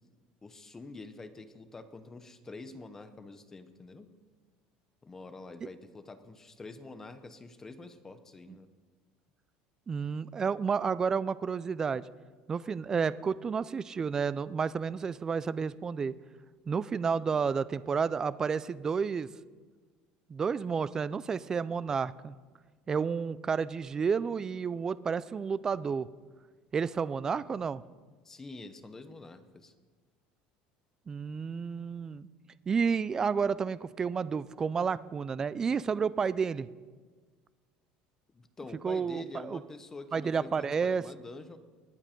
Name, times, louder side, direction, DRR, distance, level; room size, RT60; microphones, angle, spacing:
voice 1, 0.4-4.1 5.0-8.7 28.2-29.7 38.3-41.6, left 3 dB, 15° left, 10 dB, 0.8 m, -46 dB
voice 2, 9.9-12.0 12.5-16.2 16.7-19.3 20.3-22.3 22.9-26.1 26.7-27.8 31.1-32.3 32.7-36.7 38.8-39.6 40.1-41.0, right 6 dB, 20° right, 18 dB, 0.3 m, -31 dB
18.5 x 9.8 x 5.2 m, 1.5 s
cardioid pair, 155°, 3 cm